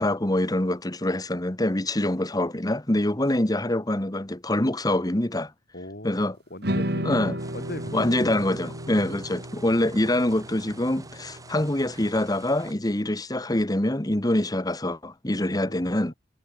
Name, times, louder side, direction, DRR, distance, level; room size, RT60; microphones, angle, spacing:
voice 1, 0.0-5.5 6.0-6.3 7.0-7.4 7.9-16.1, left 1 dB, 20° left, 1.5 m, -25 dB
voice 2, 5.7-7.1 7.5-8.4 8.9-9.2 15.4-16.1, left 1 dB, 55° left, 5.4 m, -40 dB
sound 1, 6.6-12.9, right 1 dB, 60° right, 5.8 m, -34 dB
sound 2, 7.4-12.7, right 3 dB, 20° right, 7.6 m, -48 dB
head